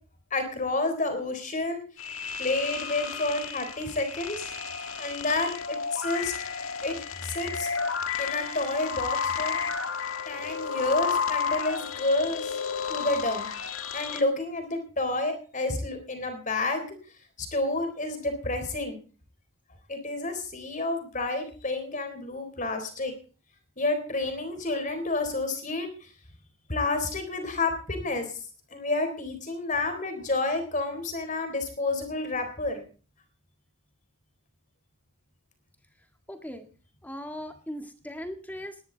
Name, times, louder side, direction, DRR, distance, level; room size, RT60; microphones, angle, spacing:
voice 1, 0.3-1.8 2.4-4.5 5.0-6.3 6.8-7.7 8.1-9.6 10.3-12.5 12.9-13.5 13.9-17.0 17.4-19.0 19.9-23.1 23.8-26.1 26.7-28.4 28.7-32.8, left 2 dB, 35° left, 8 dB, 3.9 m, -29 dB
sound 1, 2.0-14.2, left 6 dB, 75° left, 1.7 m, -32 dB
voice 2, 36.3-36.6 37.0-38.8, equal, 5° left, 6 dB, 1.7 m, -38 dB
19.0 x 13.0 x 4.0 m, 0.39 s
head